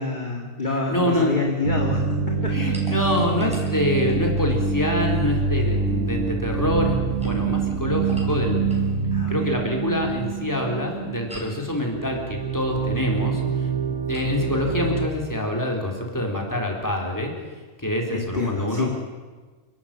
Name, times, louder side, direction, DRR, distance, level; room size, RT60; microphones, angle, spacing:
voice 1, 0.0-2.6 9.1-9.5 18.1-19.0, left 3 dB, 35° left, 1 dB, 2.1 m, -27 dB
voice 2, 0.6-1.4 2.3-8.6 9.3-17.3 17.8-19.0, left 1 dB, 15° left, 0 dB, 4.1 m, -26 dB
sound 1, 1.6-11.6 11.8-15.1, right 5 dB, 80° right, 1.5 m, -25 dB
sound 2, 2.7-4.5 7.0-8.9 11.3-11.7 14.1-14.4, equal, 5° right, 5.7 m, -44 dB
29.0 x 12.5 x 9.0 m, 1.4 s
omnidirectional pair, 1.3 m